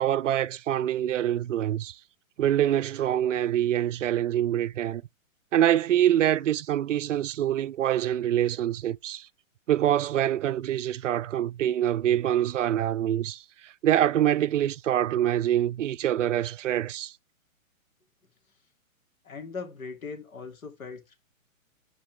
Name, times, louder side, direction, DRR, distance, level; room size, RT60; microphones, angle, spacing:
voice 1, 0.0-2.0 2.4-5.0 5.5-9.3 9.7-17.1, right 11 dB, 65° right, 0.5 m, -25 dB
voice 2, 19.2-21.2, left 4 dB, 80° left, 2.8 m, -39 dB
9.3 x 4.5 x 3.3 m
hypercardioid pair, 170°, 41 cm